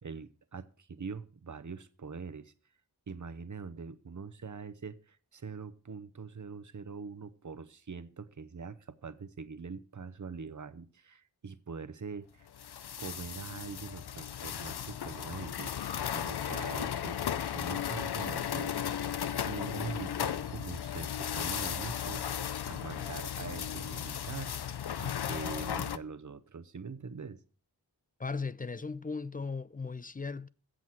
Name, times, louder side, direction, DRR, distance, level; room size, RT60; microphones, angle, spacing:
voice 1, 0.0-2.5 3.1-12.5 13.0-19.0 19.4-22.3 22.6-27.4, right 5 dB, 50° right, 0.8 m, -43 dB
sound 1, 12.5-26.0, left 9 dB, 75° left, 0.6 m, -35 dB
voice 2, 28.2-30.5, left 4 dB, 25° left, 0.3 m, -37 dB
7.8 x 6.1 x 7.4 m
wide cardioid pair, 70°, 39 cm